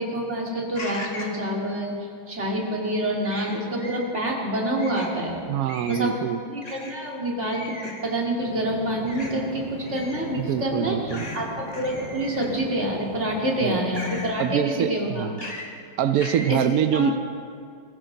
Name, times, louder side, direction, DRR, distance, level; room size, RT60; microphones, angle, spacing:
voice 1, 0.0-1.9 2.3-5.4 5.9-6.1 6.5-7.8 8.0-11.0 11.3-11.5 11.7-15.3 16.5-16.6 16.9-17.1, right 1 dB, 35° right, -2 dB, 2.6 m, -27 dB
sound 1, 0.7-1.4 3.2-4.0 4.8-5.1 5.7-6.1 6.6-6.9 7.4-8.0 9.1-9.3 9.9-10.3 11.1-11.4 11.7-12.6 13.9-14.3 15.4-15.7 16.2-16.5, left 1 dB, 20° left, 1.7 m, -37 dB
voice 2, 5.5-6.4 10.4-11.3 13.6-13.8 14.4-15.4 16.0-17.2, right 8 dB, 90° right, 10 dB, 0.7 m, -24 dB
sound 2, 8.4-14.2, left 1 dB, 60° right, 4.6 m, -39 dB
22.0 x 15.0 x 3.9 m, 2.4 s
omnidirectional pair, 2.2 m